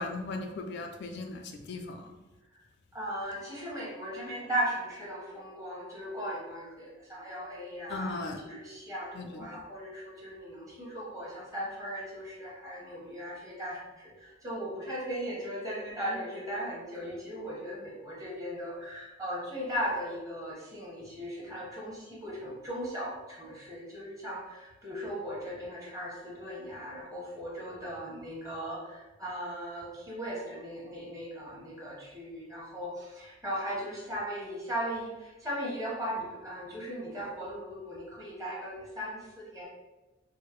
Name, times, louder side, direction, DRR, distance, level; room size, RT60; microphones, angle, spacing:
voice 1, 0.0-2.1 7.9-8.4 9.1-9.5, left 2 dB, 60° left, 4 dB, 0.4 m, -37 dB
voice 2, 2.9-8.2 8.4-39.6, equal, 20° right, -5 dB, 1.1 m, -37 dB
4.6 x 2.1 x 3.0 m, 1.1 s
head